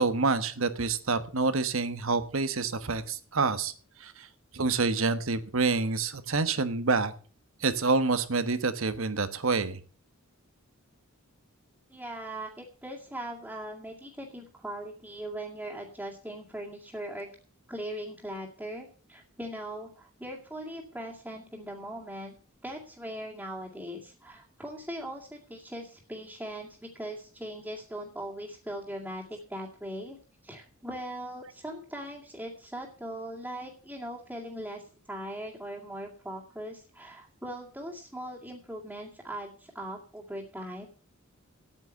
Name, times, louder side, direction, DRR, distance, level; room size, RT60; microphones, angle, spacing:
voice 1, 0.0-3.7 4.0-4.3 4.5-7.1 7.6-9.8, right 4 dB, 70° right, 12 dB, 1.2 m, -27 dB
voice 2, 11.9-17.3 17.7-22.3 22.6-30.2 30.4-40.8, right 1 dB, 5° right, -3 dB, 2.4 m, -40 dB
9.1 x 9.0 x 7.9 m, 0.41 s
head